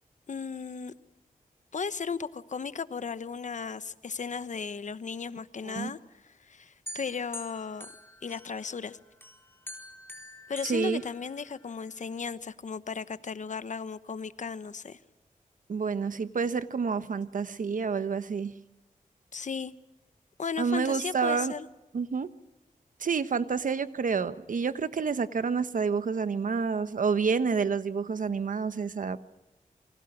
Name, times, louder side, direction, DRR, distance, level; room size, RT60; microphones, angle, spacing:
voice 1, 0.3-0.9 1.7-6.0 6.2-7.9 8.2-9.0 10.5-15.0 19.3-19.7 20.4-21.7, left 5 dB, 60° left, 14 dB, 1.0 m, -36 dB
sound 1, 6.9-8.8 9.2-11.7, left 1 dB, 15° left, 3.9 m, -46 dB
voice 2, 10.6-11.0 15.7-18.5 20.6-21.5 21.9-22.3 23.0-29.2, right 5 dB, 65° right, 13 dB, 1.2 m, -29 dB
28.5 x 24.0 x 6.1 m, 0.98 s
wide cardioid pair, 100°, 14 cm